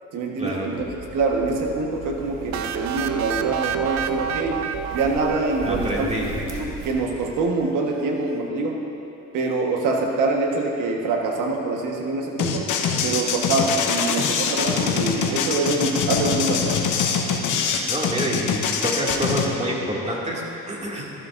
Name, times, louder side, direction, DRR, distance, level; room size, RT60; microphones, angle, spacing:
voice 1, 0.1-8.8 9.3-12.7 13.0-16.8, right 3 dB, 85° right, 1 dB, 1.4 m, -25 dB
sound 1, 0.7-7.4, right 1 dB, 45° right, 1.7 m, -37 dB
sound 2, 2.5-6.3, right 8 dB, 65° right, 0.6 m, -28 dB
voice 2, 5.7-6.3 17.9-21.1, equal, 20° right, -3 dB, 2.3 m, -27 dB
sound 3, 12.4-19.5, left 6 dB, 80° left, 1.0 m, -23 dB
14.5 x 12.5 x 2.6 m, 2.9 s
cardioid pair, 90°, 30 cm